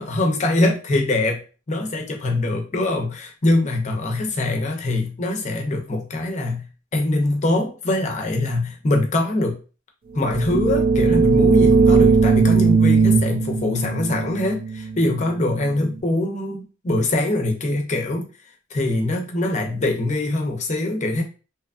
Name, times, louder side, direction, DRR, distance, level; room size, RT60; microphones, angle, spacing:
voice 1, 0.0-1.4 1.7-6.7 6.9-9.6 10.1-18.3 18.7-21.2, left 2 dB, 35° left, 0.6 m, -23 dB
sound 1, 10.2-15.8, right 4 dB, 45° right, 0.4 m, -18 dB
2.8 x 2.3 x 2.4 m
head